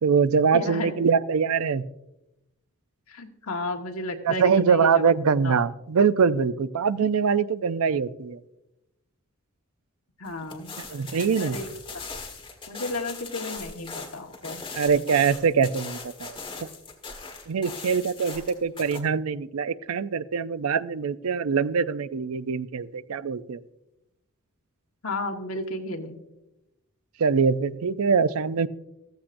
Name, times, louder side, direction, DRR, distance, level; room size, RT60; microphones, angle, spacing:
voice 1, 0.0-1.8 4.2-8.4 10.8-11.6 14.7-16.4 17.5-23.6 27.2-28.7, right 6 dB, 80° right, 14 dB, 0.5 m, -23 dB
voice 2, 0.5-1.0 3.1-5.1 5.4-5.6 10.2-10.7 11.4-12.0 12.7-14.7 25.0-26.2, left 2 dB, 80° left, 4 dB, 1.4 m, -33 dB
sound 1, 10.2-19.0, left 4 dB, 25° left, 1.5 m, -40 dB
14.5 x 14.5 x 2.6 m, 0.92 s
head